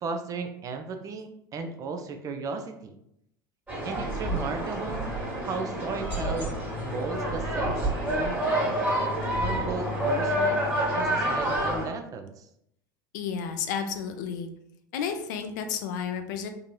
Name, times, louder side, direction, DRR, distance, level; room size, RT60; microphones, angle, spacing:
voice 1, 0.0-3.0 3.8-5.1 5.4-8.8 9.4-10.7 10.9-12.5, right 4 dB, 30° right, 6 dB, 0.4 m, -35 dB
sound 1, 3.7-11.8, equal, 15° right, 1.4 m, -28 dB
voice 2, 13.1-14.5 14.9-16.5, left 7 dB, 55° left, 7 dB, 0.4 m, -31 dB
3.7 x 2.7 x 2.3 m, 0.76 s
figure-of-eight pair, 75°, 11 cm